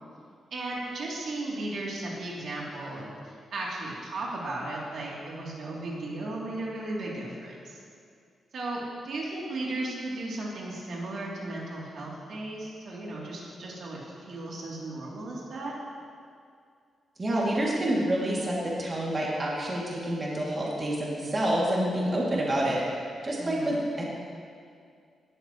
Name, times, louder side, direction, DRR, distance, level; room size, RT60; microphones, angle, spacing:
voice 1, 0.5-7.8 8.5-15.7 23.4-23.8, right 2 dB, 65° right, -5 dB, 3.1 m, -35 dB
voice 2, 17.2-22.8 23.2-24.0, right 1 dB, 30° right, -5 dB, 2.6 m, -28 dB
18.5 x 13.5 x 3.1 m, 2.3 s
cardioid pair, 115°, 0 cm